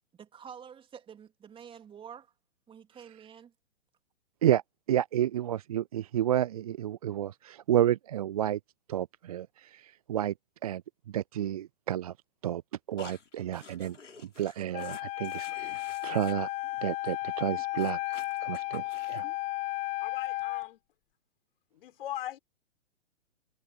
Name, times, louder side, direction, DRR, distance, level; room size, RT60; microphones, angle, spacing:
voice 1, 0.1-2.3 2.7-3.5, right 8 dB, 15° right, 3.3 m, -48 dB
voice 2, 4.9-8.6 8.9-10.3 10.6-10.8 11.1-12.1 12.4-12.6 12.9-14.0 14.4-16.5 16.8-19.3, right 11 dB, 30° right, 0.4 m, -30 dB
sound 1, 13.0-16.3 16.6-16.8 17.0-17.2 17.4-19.4, left 5 dB, 75° left, 5.2 m, -50 dB
Wind instrument woodwind instrument, 14.7-20.7, left 19 dB, 20° left, 0.9 m, -34 dB
voice 3, 20.0-20.8 21.7-22.4, left 12 dB, 50° left, 5.0 m, -40 dB
figure-of-eight pair, 120°, 37 cm